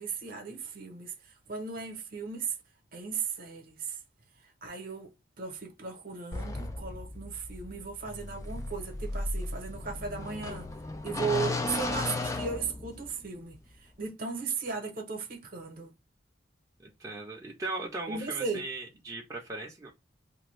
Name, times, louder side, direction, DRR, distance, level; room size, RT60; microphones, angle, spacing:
voice 1, 0.0-2.6 2.9-4.0 4.6-5.1 5.4-10.7 11.0-15.9 18.1-18.7, right 5 dB, 50° right, 0.8 m, -36 dB
sound 1, 6.3-13.2, left 2 dB, 15° left, 0.3 m, -35 dB
voice 2, 16.8-19.9, right 2 dB, 15° right, 0.6 m, -38 dB
2.6 x 2.3 x 3.0 m
head